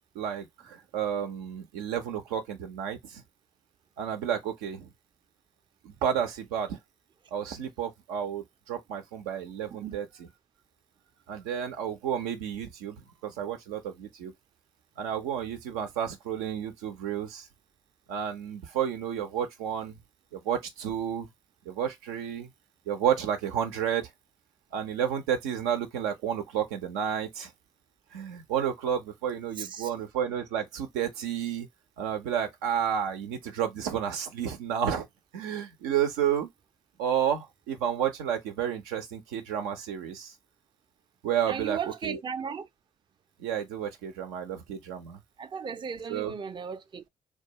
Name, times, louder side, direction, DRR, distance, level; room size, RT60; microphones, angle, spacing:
voice 1, 0.1-3.2 4.0-4.9 5.8-6.8 7.3-10.3 11.3-14.3 15.0-17.5 18.1-20.0 20.3-21.3 21.7-22.5 22.9-24.1 24.7-27.5 28.1-31.7 32.0-35.1 35.3-36.5 37.0-40.3 41.2-42.2 43.4-45.2 46.1-46.3, right 9 dB, 85° right, 0.6 m, -31 dB
voice 2, 29.6-29.9 41.5-42.7 45.4-47.1, right 7 dB, 30° right, 0.4 m, -36 dB
2.3 x 2.3 x 2.8 m
hypercardioid pair, 50°, 16 cm